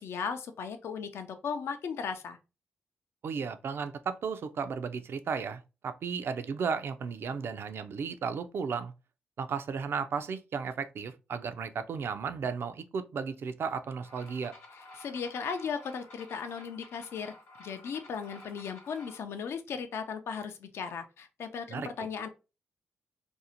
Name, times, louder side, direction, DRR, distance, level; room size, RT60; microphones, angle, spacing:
voice 1, 0.0-2.4 14.7-17.3 17.6-22.3, left 6 dB, 75° left, 0.4 m, -37 dB
voice 2, 3.2-8.9 9.4-14.5 21.7-21.9, right 6 dB, 65° right, 0.3 m, -34 dB
sound 1, 14.0-19.2, left 2 dB, 90° left, 0.9 m, -52 dB
2.6 x 2.0 x 2.7 m
cardioid pair, 55°, 4 cm